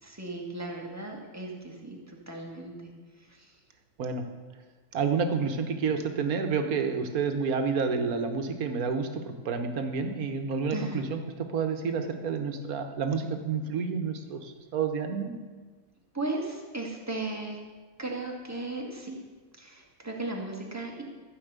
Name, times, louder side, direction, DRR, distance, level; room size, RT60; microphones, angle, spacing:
voice 1, 0.0-2.8 10.7-11.0 16.1-17.6 18.0-19.2 19.6-21.0, right 2 dB, 10° right, -1 dB, 1.8 m, -36 dB
voice 2, 4.9-15.3, right 5 dB, 75° right, 6 dB, 1.6 m, -29 dB
13.5 x 5.5 x 8.1 m, 1.4 s
omnidirectional pair, 1.5 m